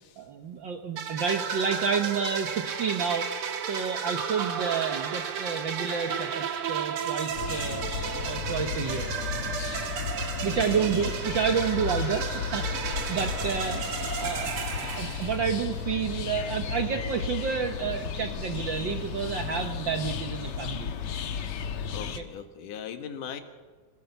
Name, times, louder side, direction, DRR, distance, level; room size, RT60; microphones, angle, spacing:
voice 1, 0.2-3.3 3.7-7.8 8.2-9.1 10.4-14.5 15.0-20.9 22.2-22.3, right 6 dB, 80° right, 5 dB, 1.0 m, -30 dB
sound 1, 1.0-15.7, right 7 dB, 55° right, 1.8 m, -33 dB
sound 2, 7.3-22.2, left 7 dB, 60° left, 1.7 m, -34 dB
sound 3, 7.3-15.0, left 3 dB, 40° left, 2.9 m, -45 dB
voice 2, 10.5-11.1 21.9-23.4, left 8 dB, 75° left, 7 dB, 3.0 m, -39 dB
26.5 x 17.5 x 6.8 m, 1.4 s
omnidirectional pair, 3.7 m